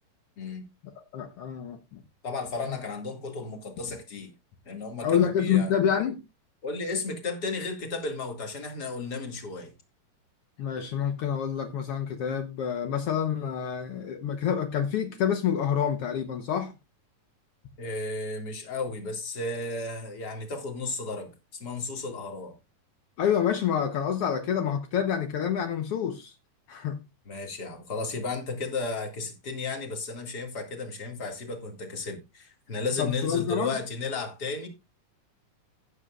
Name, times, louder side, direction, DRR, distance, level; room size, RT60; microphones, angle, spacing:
voice 1, 1.1-2.0 2.7-2.8 5.0-6.2 10.6-16.7 23.2-26.3 26.7-27.0 33.0-33.8, left 8 dB, 70° left, 1.4 m, -27 dB
voice 2, 2.2-4.3 4.7-5.7 6.6-9.7 17.8-21.3 21.6-22.5 27.3-34.7, left 3 dB, 35° left, 2.3 m, -34 dB
16.5 x 8.3 x 2.4 m
omnidirectional pair, 3.9 m